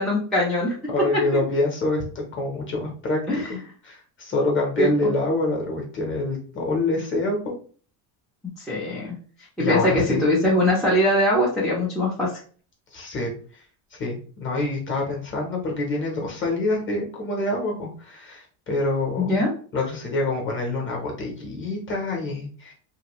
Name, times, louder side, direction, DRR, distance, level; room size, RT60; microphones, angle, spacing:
voice 1, 0.0-0.7 1.1-1.4 3.3-3.5 4.8-5.1 8.6-9.1 9.6-12.3 19.2-19.5, left 1 dB, ahead, -8 dB, 0.5 m, -22 dB
voice 2, 0.9-2.0 2.3-3.2 3.5-3.6 3.8-7.5 9.6-10.4 12.9-13.3 14.0-19.4 19.7-22.7, left 2 dB, 25° left, -1 dB, 0.9 m, -26 dB
2.8 x 2.3 x 3.0 m, 0.42 s
cardioid pair, 150°, 50 cm